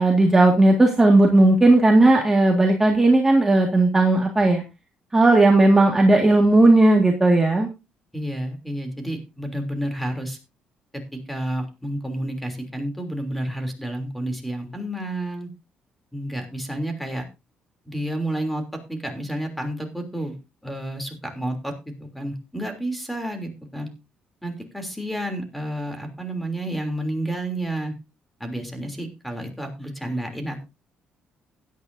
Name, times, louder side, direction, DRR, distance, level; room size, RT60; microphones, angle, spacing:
voice 1, 0.0-4.6 5.1-7.7, right 2 dB, 15° right, 1 dB, 1.9 m, -16 dB
voice 2, 8.1-10.4 11.1-15.5 16.1-17.2 17.8-18.6 18.9-20.4 20.6-21.7 22.1-23.9 24.4-27.9 28.4-30.7, right 1 dB, ahead, 4 dB, 3.2 m, -30 dB
16.0 x 10.5 x 2.7 m, 0.27 s
cardioid pair, 130°, 3 cm